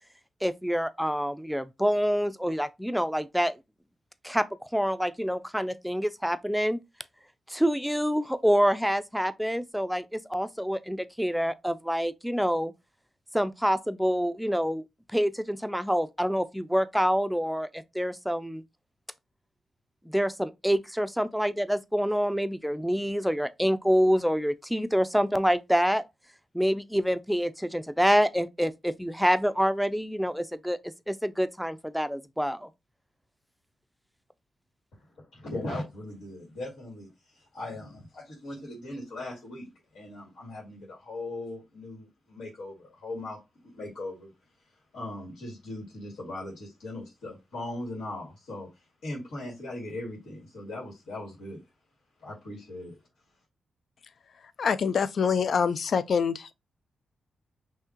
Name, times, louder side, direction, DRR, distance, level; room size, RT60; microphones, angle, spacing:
voice 1, 0.4-3.6 4.2-4.5 4.7-6.8 7.5-12.7 13.3-14.8 15.1-18.6 20.1-26.0 26.5-32.7, equal, ahead, 0.4 m, -27 dB
voice 2, 35.3-44.3 44.9-48.7 49.0-51.6 52.2-52.9, left 1 dB, 85° left, 2.2 m, -39 dB
voice 3, 54.4-56.5, left 6 dB, 65° left, 0.3 m, -26 dB
5.6 x 2.8 x 2.9 m
cardioid pair, 80°, 0 cm